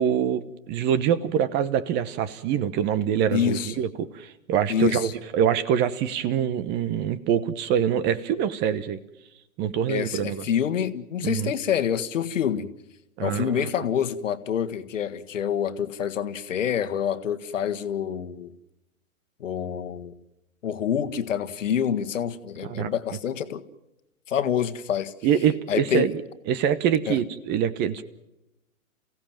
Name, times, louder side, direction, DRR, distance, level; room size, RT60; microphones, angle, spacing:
voice 1, 0.0-9.0 9.6-10.5 11.2-11.5 13.2-13.7 22.6-22.9 25.2-26.2 26.5-28.0, right 9 dB, 25° right, 16 dB, 1.1 m, -25 dB
voice 2, 3.3-3.7 4.7-5.1 9.9-12.7 13.2-18.5 19.4-20.2 20.6-23.6 24.3-25.1 25.7-26.1 27.1-27.2, left 8 dB, 65° left, 10 dB, 1.7 m, -27 dB
29.0 x 16.5 x 7.4 m, 0.94 s
figure-of-eight pair, 120°, 42 cm